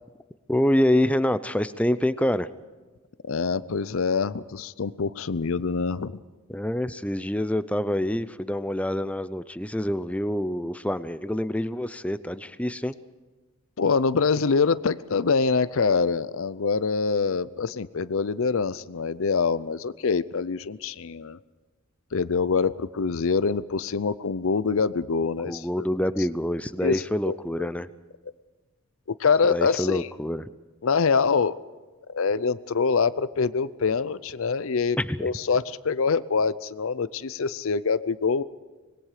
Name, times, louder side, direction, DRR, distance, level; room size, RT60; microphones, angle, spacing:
voice 1, 0.5-2.5 6.5-12.9 25.5-27.9 29.5-30.5 35.0-35.3, left 1 dB, 5° left, 14 dB, 0.5 m, -26 dB
voice 2, 3.3-6.2 13.8-21.4 22.1-25.9 26.8-27.7 29.2-30.1 30.8-31.6 32.1-38.4, left 5 dB, 65° left, 16 dB, 0.6 m, -25 dB
25.5 x 20.5 x 4.9 m, 1.3 s
head